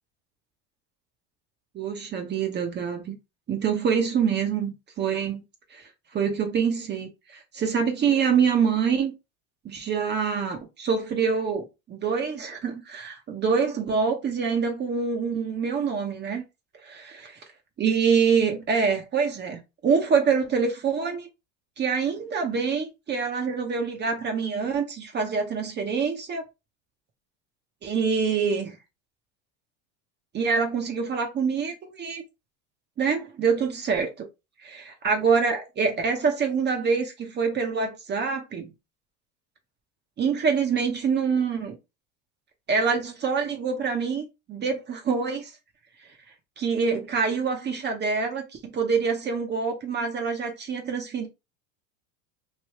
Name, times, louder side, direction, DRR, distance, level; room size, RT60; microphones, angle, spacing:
voice 1, 1.7-3.2 3.5-5.4 5.7-9.1 9.6-16.4 17.8-21.3 21.8-26.4 27.8-28.8 30.3-32.2 33.0-34.3 35.0-38.7 40.2-41.8 42.7-45.5 46.6-51.3, right 6 dB, 25° right, 0.7 m, -25 dB
3.2 x 2.6 x 2.8 m
supercardioid pair, 110°, 39 cm